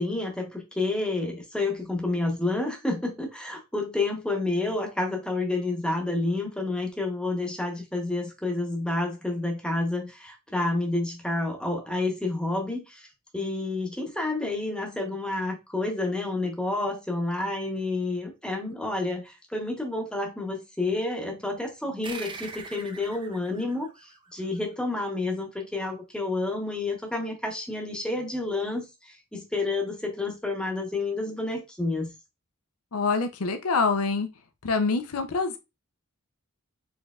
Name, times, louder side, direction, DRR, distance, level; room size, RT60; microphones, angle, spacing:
voice 1, 0.0-13.1 13.3-32.1, left 2 dB, 5° left, 0.9 m, -29 dB
sound 1, 22.0-25.0, right 4 dB, 20° right, 0.6 m, -43 dB
voice 2, 32.9-34.3 34.6-35.6, left 4 dB, 80° left, 0.6 m, -25 dB
4.3 x 3.3 x 2.4 m
head